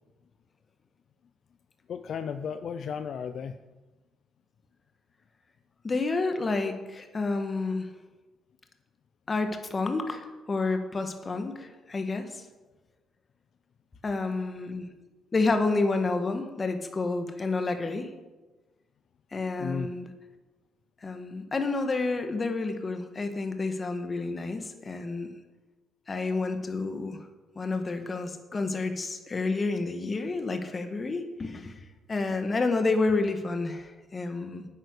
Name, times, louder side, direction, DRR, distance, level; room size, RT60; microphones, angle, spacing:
voice 1, 1.9-3.6 19.6-19.9, left 6 dB, 60° left, 10 dB, 0.5 m, -34 dB
voice 2, 5.8-7.9 9.3-12.4 14.0-14.9 15.3-18.1 19.3-20.1 21.0-25.3 26.1-27.2 27.5-34.7, left 3 dB, 30° left, 7 dB, 1.6 m, -29 dB
9.7 x 8.9 x 6.6 m, 1.2 s
cardioid pair, 90°, 0 cm